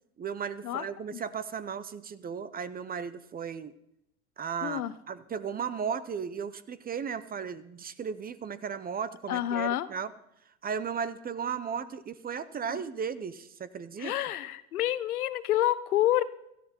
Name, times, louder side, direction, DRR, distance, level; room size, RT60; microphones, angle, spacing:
voice 1, 0.2-3.7 4.4-10.1 10.6-14.1, right 6 dB, 20° right, 16 dB, 0.7 m, -35 dB
voice 2, 4.6-4.9 9.3-9.9 12.7-12.8 14.0-16.2, left 13 dB, 85° left, 15 dB, 1.0 m, -28 dB
17.0 x 13.0 x 4.4 m, 0.80 s
hypercardioid pair, 100°, 43 cm